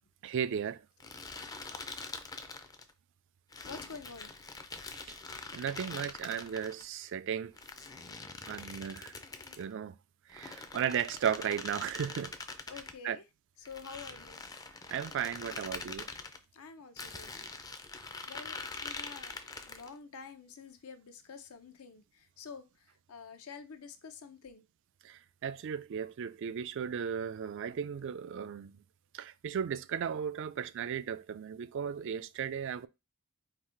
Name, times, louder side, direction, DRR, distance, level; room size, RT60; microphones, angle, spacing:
voice 1, 0.2-0.8 5.1-5.2 5.5-7.5 8.5-9.1 9.6-9.9 10.3-12.3 13.0-13.2 14.9-16.1 25.0-28.8 29.1-32.9, right 8 dB, 60° right, 0.3 m, -35 dB
sound 1, 1.0-2.9 3.5-6.8 7.6-9.7 10.3-13.0 13.7-16.4 17.0-19.9, left 3 dB, 15° left, 0.4 m, -44 dB
voice 2, 3.6-4.3 12.7-13.2 13.6-14.4 16.5-17.6 18.3-19.4 19.6-24.6, left 5 dB, 80° left, 0.7 m, -48 dB
4.0 x 2.7 x 4.3 m
head